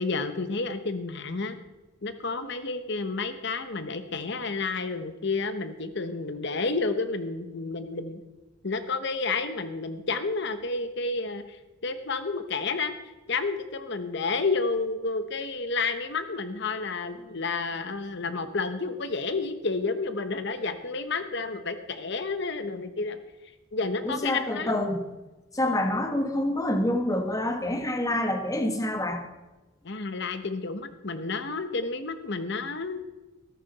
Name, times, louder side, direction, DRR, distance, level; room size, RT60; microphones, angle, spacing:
voice 1, 0.0-1.6 2.0-8.2 8.6-11.6 11.8-12.9 13.3-23.2 23.7-24.8 29.8-33.0, left 3 dB, 60° left, 10 dB, 1.1 m, -30 dB
voice 2, 24.0-25.1 25.5-29.2, left 1 dB, 15° left, 5 dB, 1.5 m, -27 dB
14.0 x 13.5 x 4.2 m, 1.1 s
head